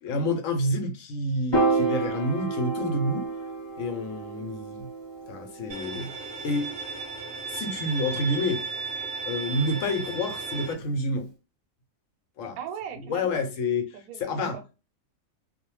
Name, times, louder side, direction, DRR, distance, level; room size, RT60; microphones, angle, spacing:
voice 1, 0.0-3.3 3.8-4.9 5.3-6.1 6.4-6.7 7.5-8.7 9.2-11.3 12.4-12.6 13.1-14.6, left 1 dB, 75° left, 1.0 m, -28 dB
Piano, 1.5-7.9, right 3 dB, 20° left, 1.0 m, -31 dB
Bowed string instrument, 5.7-10.7, right 4 dB, 55° right, 0.8 m, -35 dB
voice 2, 12.6-13.4 13.9-14.7, right 8 dB, 85° right, 1.0 m, -39 dB
2.4 x 2.1 x 3.0 m
omnidirectional pair, 1.5 m